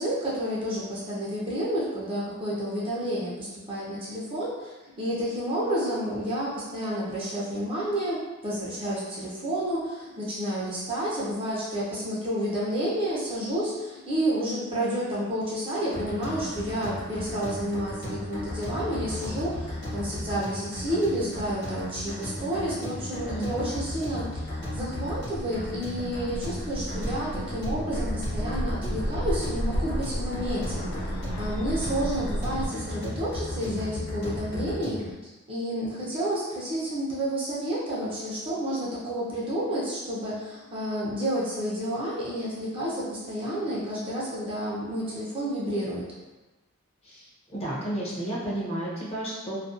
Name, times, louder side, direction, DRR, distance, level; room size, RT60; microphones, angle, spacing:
voice 1, 0.0-35.0 35.5-46.1, equal, 25° right, -7 dB, 0.5 m, -30 dB
sound 1, 15.9-35.1, left 1 dB, 55° left, 1.0 m, -35 dB
voice 2, 23.3-23.7 47.0-47.3 47.5-49.6, right 1 dB, 30° left, -7 dB, 0.6 m, -32 dB
sound 2, 24.8-32.7, equal, 70° left, 0.3 m, -33 dB
2.4 x 2.2 x 2.4 m, 1.1 s
head